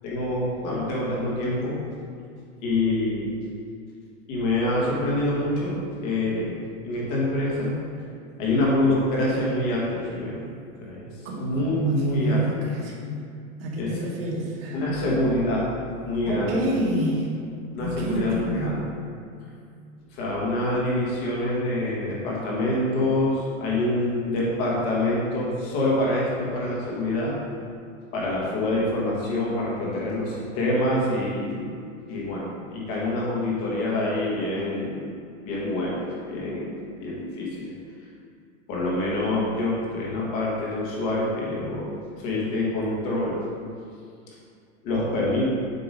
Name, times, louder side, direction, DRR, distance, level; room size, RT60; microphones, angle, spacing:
voice 1, 0.0-1.8 2.6-3.3 4.3-6.6 6.8-7.7 8.4-10.4 10.8-11.1 11.4-12.4 13.8-13.9 14.7-15.7 16.0-16.6 17.7-18.7 20.1-27.4 28.1-31.7 32.1-35.1 35.4-37.7 38.7-41.9 42.2-43.4 44.8-45.4, left 1 dB, 30° left, -5 dB, 1.4 m, -26 dB
voice 2, 11.2-13.0 13.6-15.2 16.3-17.4 17.8-18.9, right 1 dB, 45° right, -2 dB, 1.2 m, -28 dB
7.9 x 2.9 x 5.1 m, 2.3 s
supercardioid pair, 180°, 39 cm